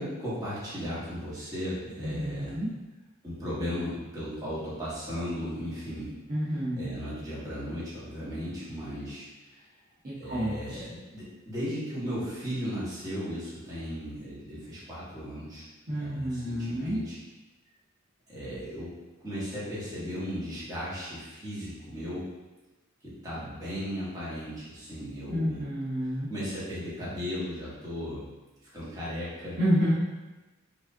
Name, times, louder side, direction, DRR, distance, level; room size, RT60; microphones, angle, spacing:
voice 1, 0.0-2.5 3.2-6.1 6.8-9.6 10.2-15.6 15.9-17.2 18.3-18.9 19.2-22.2 23.0-25.6 26.0-28.3 28.7-29.6, equal, 15° right, -10 dB, 1.4 m, -36 dB
voice 2, 2.0-2.7 6.3-6.9 10.3-10.8 15.9-17.0 25.3-26.3 29.6-29.9, equal, 45° right, -10 dB, 0.8 m, -29 dB
4.7 x 2.6 x 2.6 m, 1.1 s
head